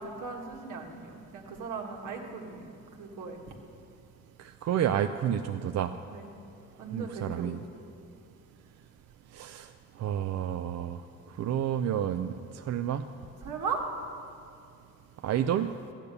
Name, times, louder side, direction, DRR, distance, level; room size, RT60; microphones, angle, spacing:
voice 1, 0.0-3.4 6.1-6.3 6.8-7.5 13.4-13.8, right 5 dB, 85° right, 1 dB, 1.7 m, -38 dB
voice 2, 4.4-5.9 6.9-7.6 9.3-9.7 10.0-11.0 11.4-13.0 15.2-15.7, right 10 dB, 60° right, 8 dB, 0.5 m, -30 dB
13.5 x 9.0 x 6.7 m, 2.5 s
cardioid pair, 90°, 30 cm